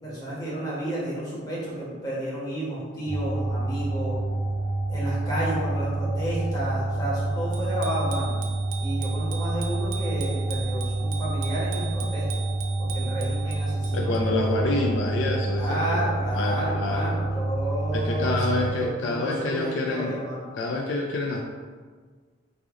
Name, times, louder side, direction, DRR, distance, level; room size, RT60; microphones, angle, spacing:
voice 1, 0.0-4.2 4.9-8.4 8.8-12.4 12.8-14.8 15.5-20.5, right 1 dB, 20° left, -8 dB, 1.1 m, -31 dB
sound 1, 3.0-18.7, right 2 dB, 40° right, 0.8 m, -28 dB
Bicycle bell, 7.5-14.2, right 9 dB, 80° right, 0.4 m, -40 dB
voice 2, 13.9-16.0 16.3-17.2 17.9-20.2 20.6-21.4, left 2 dB, 70° left, 0 dB, 0.3 m, -27 dB
3.3 x 2.4 x 3.6 m, 1.6 s
head